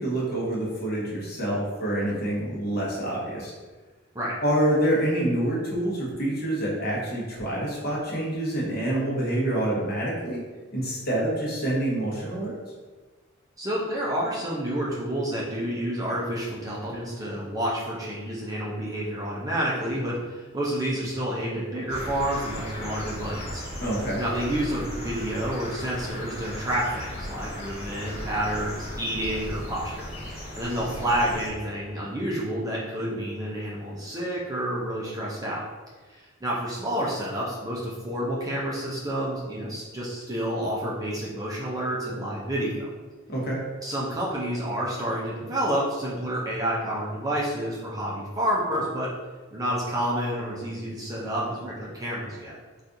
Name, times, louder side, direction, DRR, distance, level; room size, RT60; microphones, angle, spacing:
voice 1, 0.0-3.5 4.4-10.4 10.7-12.5 23.8-24.2 43.3-43.6, right 1 dB, 45° left, -5 dB, 0.9 m, -27 dB
voice 2, 13.6-23.8 24.2-35.6 36.1-42.9 43.8-49.1 49.5-52.5, right 1 dB, 15° right, -5 dB, 0.5 m, -29 dB
sound 1, 21.9-31.5, equal, 30° left, 1.1 m, -36 dB
4.1 x 2.4 x 2.6 m, 1.3 s
head